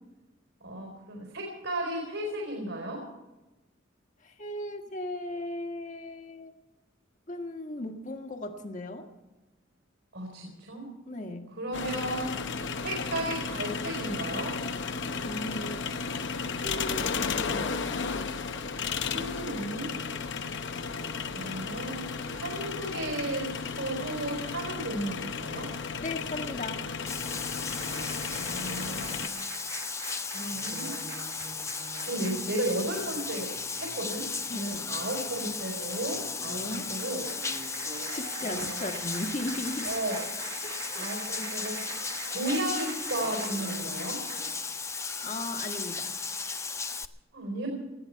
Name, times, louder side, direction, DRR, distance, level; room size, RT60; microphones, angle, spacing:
voice 1, 0.6-3.0 10.1-10.9 11.6-12.3 12.8-14.6 19.0-19.9 20.7-22.0 22.3-25.7 28.3-29.3 30.3-31.0 32.0-37.2 38.4-38.8 39.8-40.3 41.0-41.8 42.3-44.2 47.3-47.7, right 1 dB, 75° right, 0 dB, 4.1 m, -34 dB
voice 2, 4.2-6.5 7.3-9.1 11.1-11.5 15.2-15.9 16.5-18.0 26.0-26.9 34.5-34.9 36.4-36.9 38.1-39.9 40.6-41.1 45.2-46.1, left 1 dB, 40° left, 4 dB, 1.5 m, -37 dB
sound 1, 11.7-29.3, left 5 dB, 65° left, 0.8 m, -34 dB
Bathtub (filling or washing), 27.1-47.1, left 4 dB, 15° left, 0.5 m, -35 dB
sound 2, 27.7-44.6, right 4 dB, 60° right, 1.6 m, -44 dB
19.5 x 14.5 x 4.6 m, 1.1 s
head